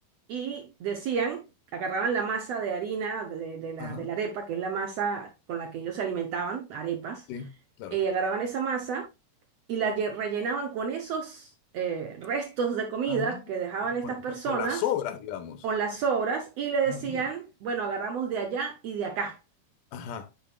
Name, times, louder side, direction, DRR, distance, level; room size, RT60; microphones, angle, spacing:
voice 1, 0.3-1.4 1.7-7.2 7.9-9.1 9.7-14.8 15.6-19.4, right 6 dB, 70° right, 1.6 m, -30 dB
voice 2, 3.8-4.1 7.3-7.5 7.8-8.0 13.1-13.4 14.0-14.1 14.5-15.7 16.9-17.2 19.9-20.3, left 10 dB, 80° left, 2.4 m, -34 dB
10.5 x 4.4 x 2.4 m
omnidirectional pair, 3.8 m